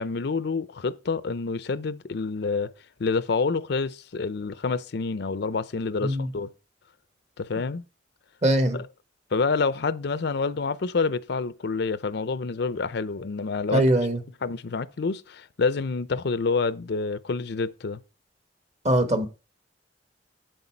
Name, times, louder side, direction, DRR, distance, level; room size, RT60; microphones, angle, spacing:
voice 1, 0.0-2.7 3.0-6.5 7.4-7.8 8.7-8.9 9.3-13.9 14.4-18.0, left 4 dB, 60° left, 0.5 m, -28 dB
voice 2, 8.4-8.8 13.7-14.2 18.8-19.3, right 1 dB, 40° right, 1.3 m, -21 dB
8.0 x 7.9 x 4.4 m
head